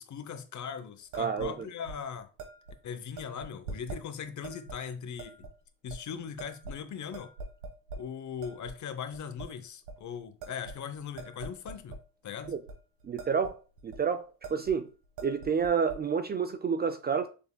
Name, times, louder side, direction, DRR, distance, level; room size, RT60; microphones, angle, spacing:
voice 1, 0.0-2.3 2.8-5.3 5.8-7.3 8.0-12.0 12.2-12.5, left 7 dB, 50° left, 0.8 m, -39 dB
sound 1, 1.1-1.5 1.9-2.0 2.4-2.7 3.2-4.0 4.4-4.8 5.2-5.5 5.9-6.0 6.4-6.9 7.1-8.0 8.4-8.8 9.1-9.5 9.8-10.0 10.4-12.0 12.4-12.8 13.0-13.5 13.8-14.0 14.4-14.8 15.0-16.0, right 3 dB, 80° right, 1.4 m, -43 dB
voice 2, 1.2-1.7 12.5-12.6 13.0-14.9 15.2-17.3, right 6 dB, 25° right, 0.3 m, -29 dB
6.8 x 3.4 x 2.2 m
supercardioid pair, 70°, 39 cm